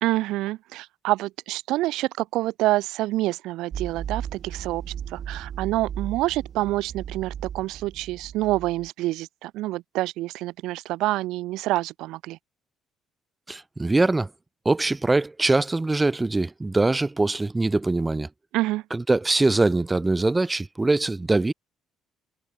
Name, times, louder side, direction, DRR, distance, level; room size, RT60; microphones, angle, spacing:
voice 1, 0.0-4.8 5.1-12.4 18.5-18.8, right 17 dB, 80° right, 0.9 m, -27 dB
sound 1, 3.7-8.9, right 9 dB, 35° right, 1.2 m, -36 dB
voice 2, 13.5-14.3 14.7-18.3 18.9-21.5, right 2 dB, 10° right, 0.3 m, -22 dB
cardioid pair, 180°, 0 cm